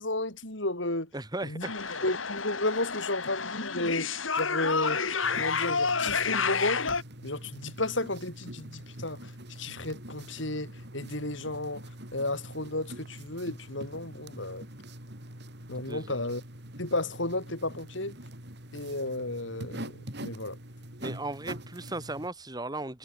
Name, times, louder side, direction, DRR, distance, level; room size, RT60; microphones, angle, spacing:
voice 1, 0.0-1.1 1.4-1.7 2.0-5.0 5.3-6.8 7.2-11.9 12.1-14.7 15.7-16.4 16.8-18.1 18.7-20.6, left 2 dB, 65° left, 7.0 m, -33 dB
voice 2, 1.1-2.0 15.9-16.2 21.0-23.0, right 2 dB, 20° right, 3.5 m, -37 dB
sound 1, 1.6-7.0, left 5 dB, 80° left, 4.1 m, -30 dB
sound 2, 5.2-22.3, right 1 dB, 55° right, 6.7 m, -44 dB
head